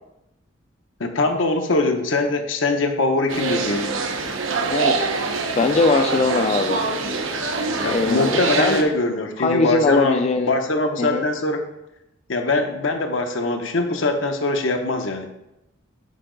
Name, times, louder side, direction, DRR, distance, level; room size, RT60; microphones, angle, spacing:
voice 1, 1.0-3.9 7.8-11.6 12.3-15.3, left 2 dB, 70° left, 5 dB, 0.8 m, -22 dB
sound 1, 3.3-8.8, right 4 dB, 90° right, 0.8 m, -24 dB
voice 2, 5.6-6.8 7.8-8.8 9.4-10.5 11.0-11.3, left 3 dB, 35° left, 5 dB, 0.3 m, -20 dB
6.7 x 4.6 x 3.8 m, 0.89 s
head